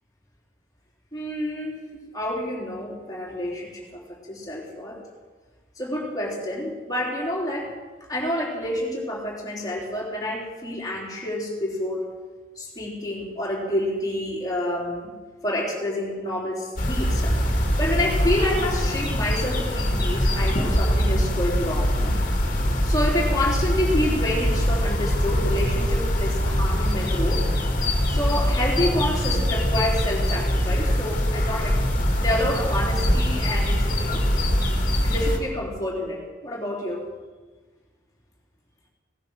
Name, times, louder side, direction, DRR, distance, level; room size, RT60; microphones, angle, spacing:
voice 1, 1.1-1.8 2.1-5.0 5.7-7.7 8.1-12.1 12.5-15.1 15.4-17.3 17.8-22.2 22.8-27.5 28.1-31.8 32.2-34.2 35.0-37.1, left 1 dB, 20° left, -3 dB, 3.6 m, -28 dB
sound 1, 16.8-35.4, equal, 45° left, 2.4 m, -23 dB
18.0 x 11.0 x 6.4 m, 1.3 s
head